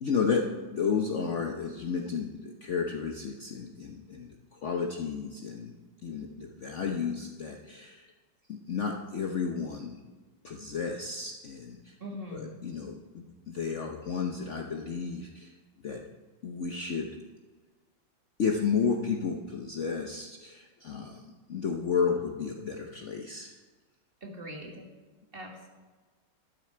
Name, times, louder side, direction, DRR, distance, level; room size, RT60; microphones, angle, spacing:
voice 1, 0.0-5.8 6.0-8.1 8.5-10.0 10.4-12.0 12.3-15.5 15.8-16.0 16.4-17.1 18.4-23.5, left 5 dB, 55° left, 3 dB, 0.9 m, -32 dB
voice 2, 12.0-12.5 24.2-24.9 25.3-25.7, equal, 30° right, 1 dB, 1.8 m, -41 dB
12.5 x 10.5 x 4.5 m, 1.4 s
omnidirectional pair, 2.0 m